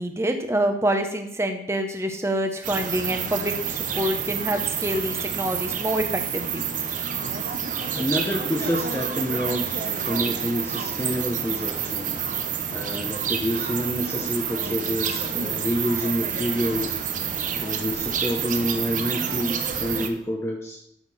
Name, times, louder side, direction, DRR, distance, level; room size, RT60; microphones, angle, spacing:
voice 1, 0.0-6.0 6.3-6.6, right 1 dB, 15° right, 5 dB, 0.9 m, -26 dB
sound 1, 2.6-20.1, right 7 dB, 45° right, 0.9 m, -28 dB
voice 2, 7.9-12.1 12.7-20.8, equal, 15° left, -1 dB, 0.8 m, -28 dB
12.0 x 6.7 x 4.2 m, 0.76 s
head